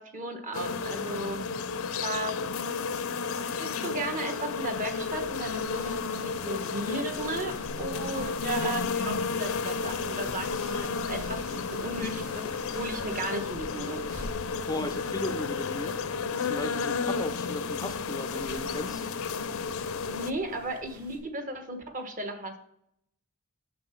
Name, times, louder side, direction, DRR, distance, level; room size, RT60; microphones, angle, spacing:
voice 1, 0.0-1.4 1.9-2.4 3.4-14.0 20.1-22.5, right 2 dB, 35° right, 6 dB, 1.2 m, -35 dB
sound 1, 0.5-20.3, left 5 dB, 70° left, 0.5 m, -32 dB
sound 2, 4.5-21.2, equal, 75° right, 2.4 m, -48 dB
voice 2, 14.7-16.0 16.4-19.1, left 2 dB, 15° left, 9 dB, 0.4 m, -36 dB
6.8 x 6.7 x 5.6 m, 0.72 s
head